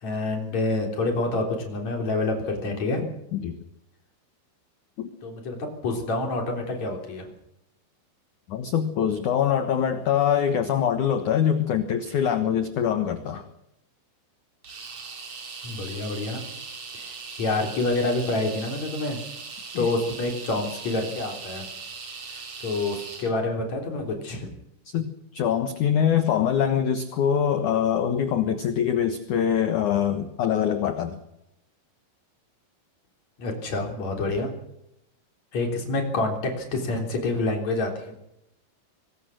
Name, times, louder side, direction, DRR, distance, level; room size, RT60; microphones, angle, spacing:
voice 1, 0.0-3.0 5.2-7.3 15.6-16.4 16.9-19.2 19.8-21.7 22.3-24.5 33.4-34.5 35.5-38.1, left 2 dB, 40° left, 3 dB, 4.5 m, -27 dB
voice 2, 8.5-13.5 19.7-19.9 24.9-31.2, left 9 dB, 65° left, 9 dB, 2.0 m, -24 dB
sound 1, 14.6-23.3, right 4 dB, 35° right, 3.1 m, -39 dB
24.0 x 20.0 x 6.5 m, 0.82 s
omnidirectional pair, 5.4 m